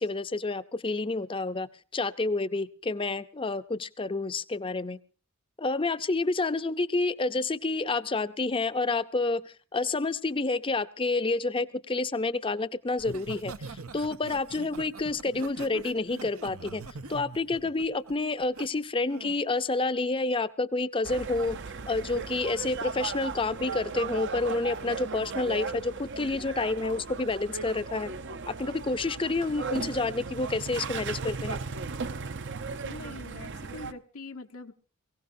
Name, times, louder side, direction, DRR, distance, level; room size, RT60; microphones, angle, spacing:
voice 1, 0.0-5.0 5.6-16.8 17.1-21.6 21.9-28.1 28.6-31.6, left 3 dB, 25° left, 12 dB, 0.6 m, -29 dB
Laughter, 13.0-18.7 19.1-19.4, right 4 dB, 85° right, 0.9 m, -42 dB
sound 1, 21.0-33.9, right 5 dB, 55° right, 0.7 m, -37 dB
voice 2, 32.8-34.7, left 3 dB, 85° left, 4 dB, 1.1 m, -43 dB
23.0 x 16.5 x 2.7 m, 0.39 s
head